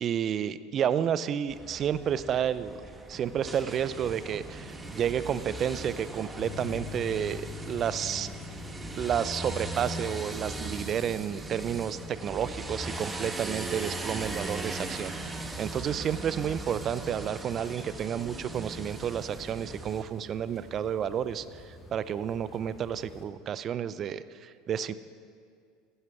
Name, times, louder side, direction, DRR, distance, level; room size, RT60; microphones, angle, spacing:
voice 1, 0.0-2.8 3.1-8.3 9.0-15.1 15.6-24.9, right 9 dB, 40° right, 16 dB, 0.5 m, -31 dB
sound 1, 1.5-20.0, right 2 dB, 15° right, 1.2 m, -39 dB
sound 2, 3.3-23.3, left 1 dB, 15° left, 3.0 m, -53 dB
Bass guitar, 6.4-12.6, left 11 dB, 40° left, 1.1 m, -46 dB
15.5 x 11.5 x 4.8 m, 2.3 s
hypercardioid pair, 75°, 0 cm